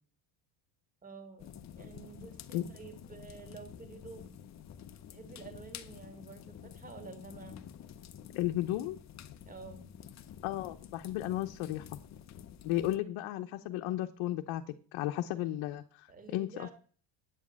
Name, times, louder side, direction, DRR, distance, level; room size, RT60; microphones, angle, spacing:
voice 1, 1.0-4.3 5.1-7.6 9.5-9.9 16.1-16.7, right 4 dB, 15° right, 7 dB, 1.9 m, -50 dB
sound 1, 1.4-13.0, left 9 dB, 35° left, 0.8 m, -50 dB
voice 2, 8.3-9.0 10.4-12.0 12.6-14.6 14.9-16.7, left 14 dB, 75° left, 5 dB, 1.0 m, -34 dB
8.8 x 7.4 x 8.7 m, 0.42 s
cardioid pair, 155°, 48 cm